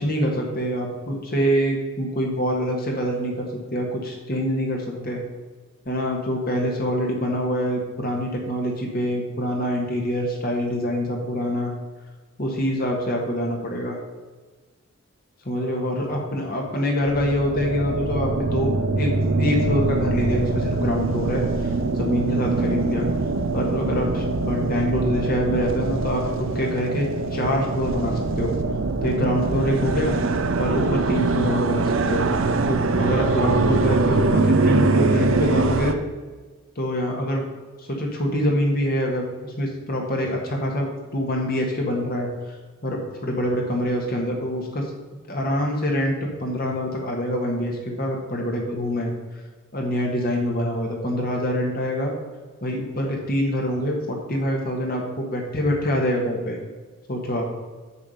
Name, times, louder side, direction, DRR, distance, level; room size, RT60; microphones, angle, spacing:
voice 1, 0.0-5.2 5.8-11.7 12.4-14.0 15.4-19.1 19.4-21.7 21.9-23.1 23.5-28.5 29.0-30.1 30.6-32.2 32.6-35.9 36.7-37.4 37.8-42.3 42.8-44.9 45.3-49.1 49.7-52.1 52.6-56.6 57.1-57.5, equal, 45° left, 0 dB, 1.6 m, -25 dB
sound 1, 17.0-35.9, right 3 dB, 65° right, 0.6 m, -23 dB
7.2 x 6.8 x 5.5 m, 1.4 s
head